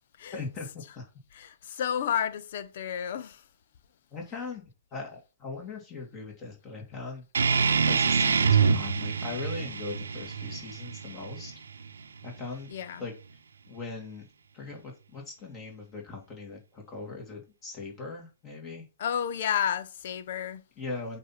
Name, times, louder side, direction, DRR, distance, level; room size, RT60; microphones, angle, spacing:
voice 1, 0.3-1.1 4.1-4.6 4.9-7.2 7.8-11.5 12.2-12.7 13.0-13.1 13.7-14.3 14.5-18.9 20.8-21.2, left 4 dB, 25° left, 2.2 m, -40 dB
voice 2, 1.8-3.3 12.7-13.1 19.0-20.6, left 9 dB, 60° left, 0.9 m, -31 dB
sound 1, 7.3-12.4, right 5 dB, 85° right, 0.8 m, -26 dB
8.3 x 2.9 x 5.7 m
hypercardioid pair, 140°, 0 cm